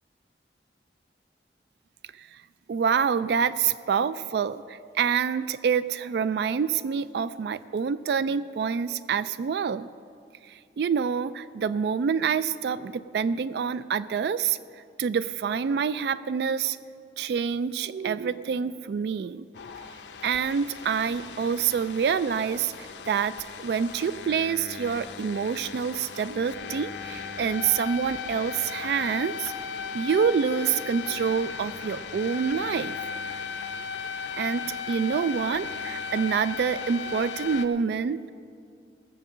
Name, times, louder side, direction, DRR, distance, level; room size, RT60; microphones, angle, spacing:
voice 1, 2.7-9.9 10.5-14.6 15.0-16.8 17.2-19.4 20.2-29.5 29.9-33.0 34.4-38.3, right 6 dB, 70° right, 15 dB, 0.3 m, -27 dB
sound 1, 19.5-37.7, left 6 dB, 85° left, 0.7 m, -37 dB
16.5 x 6.8 x 7.3 m, 2.4 s
head